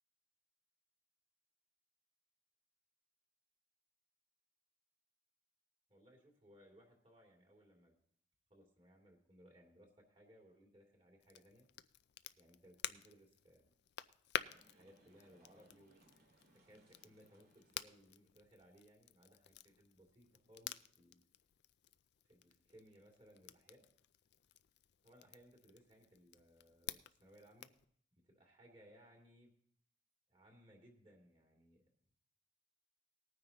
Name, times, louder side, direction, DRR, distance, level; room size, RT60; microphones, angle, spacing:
voice 1, 5.9-7.9 8.5-11.7 12.4-13.7 14.7-16.0 16.6-21.2 22.2-23.8 25.0-27.7 28.2-29.5 30.3-31.8, equal, 30° right, 0 dB, 2.7 m, -64 dB
Crackle, 11.2-27.8, left 10 dB, 65° left, 0.4 m, -51 dB
sound 1, 14.3-18.3, right 1 dB, 60° right, 2.2 m, -71 dB
19.0 x 9.5 x 2.9 m, 0.64 s
head